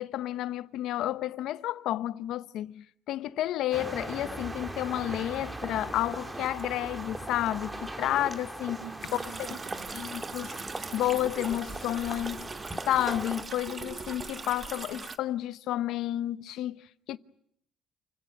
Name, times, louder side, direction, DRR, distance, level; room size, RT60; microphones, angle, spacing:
voice 1, 0.0-8.8 9.5-9.6 9.9-10.6 10.9-12.5 12.9-17.2, left 13 dB, 75° left, 0.9 m, -31 dB
sound 1, 3.7-13.5, right 2 dB, 15° right, 2.2 m, -39 dB
voice 2, 8.8-10.0, right 10 dB, 75° right, 1.3 m, -46 dB
sound 2, 9.0-15.2, right 4 dB, 30° right, 1.4 m, -41 dB
29.0 x 17.0 x 9.1 m
cardioid pair, 110°, 0 cm